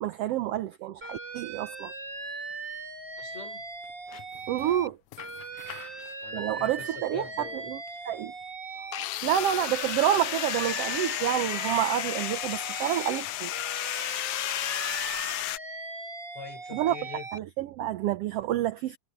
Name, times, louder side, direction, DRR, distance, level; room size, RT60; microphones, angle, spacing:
voice 1, 0.0-1.9 4.5-5.0 6.3-7.8 8.0-8.3 9.2-13.5 16.7-17.0 17.3-19.0, right 12 dB, 75° right, 1.4 m, -28 dB
Alarm, 1.0-4.9 5.2-9.0 9.3-13.2 13.5-17.4, right 3 dB, 30° right, 1.2 m, -39 dB
voice 2, 3.2-3.7 4.4-4.7 5.5-5.9 6.2-7.7 8.7-8.8 16.4-17.3, left 6 dB, 60° left, 6.3 m, -44 dB
sound 1, 4.1-4.8 5.1-6.1 6.8-6.9 8.9-15.6, left 15 dB, 75° left, 1.8 m, -33 dB
omnidirectional pair, 3.5 m